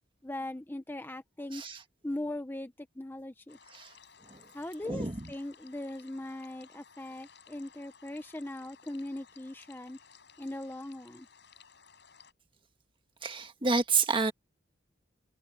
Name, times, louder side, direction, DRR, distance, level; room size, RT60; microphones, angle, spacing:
voice 1, 0.2-1.6 2.0-3.6 4.5-10.0 10.4-11.3, left 1 dB, 10° left, 0.7 m, -39 dB
sound 1, 3.5-12.3, left 6 dB, 65° left, 6.8 m, -58 dB
voice 2, 4.8-5.2 13.2-14.3, right 4 dB, 30° right, 1.6 m, -29 dB
head